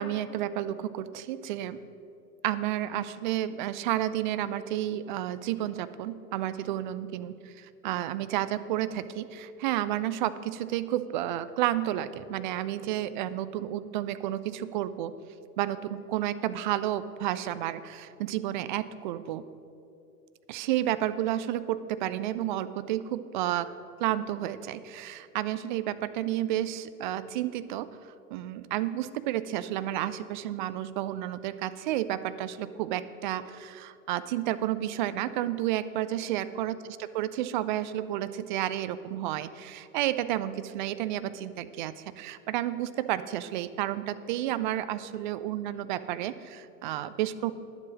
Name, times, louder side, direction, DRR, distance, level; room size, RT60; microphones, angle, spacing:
voice 1, 0.0-1.8 2.4-15.1 15.6-19.4 20.5-23.7 24.0-27.9 28.3-47.5, right 13 dB, 35° right, 14 dB, 0.4 m, -31 dB
10.5 x 7.7 x 6.2 m, 2.6 s
figure-of-eight pair, 95°, 45 cm